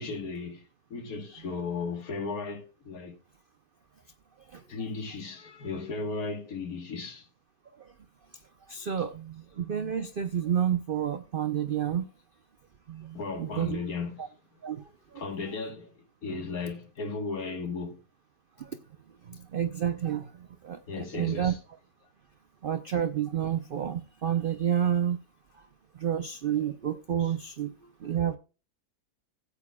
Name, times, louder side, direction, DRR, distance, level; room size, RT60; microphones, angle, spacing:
voice 1, 0.0-3.2 4.7-7.3 13.1-14.3 15.2-18.0 20.9-21.6 27.2-27.3, left 4 dB, 60° left, 1.8 m, -36 dB
voice 2, 8.7-12.1 12.9-13.8 14.2-14.3 14.6-14.8 15.1-15.2 18.6-18.8 19.3-21.5 22.6-25.2 25.9-27.7 28.0-28.4, right 9 dB, 85° right, 0.4 m, -30 dB
16.5 x 8.2 x 2.3 m
omnidirectional pair, 1.8 m